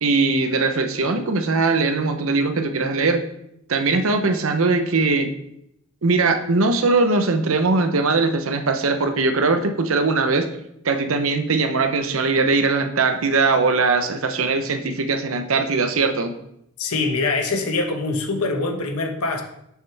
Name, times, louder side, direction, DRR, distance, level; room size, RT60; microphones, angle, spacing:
voice 1, 0.0-3.2 3.7-5.3 6.0-10.5 10.8-16.3, right 3 dB, 65° right, 7 dB, 0.7 m, -20 dB
voice 2, 16.8-19.4, left 3 dB, 85° left, 3 dB, 1.2 m, -24 dB
6.6 x 6.4 x 3.4 m, 0.77 s
head